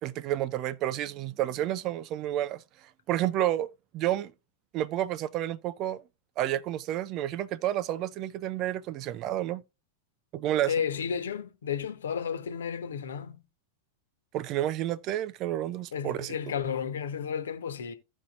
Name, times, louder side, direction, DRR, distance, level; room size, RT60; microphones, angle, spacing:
voice 1, 0.0-2.6 3.1-4.3 4.7-6.0 6.4-9.6 10.3-10.7 14.3-16.4, right 13 dB, 35° right, 0.5 m, -30 dB
voice 2, 10.7-13.4 15.9-17.9, left 7 dB, 65° left, 1.3 m, -32 dB
16.0 x 5.4 x 2.5 m
figure-of-eight pair, 90°, 0 cm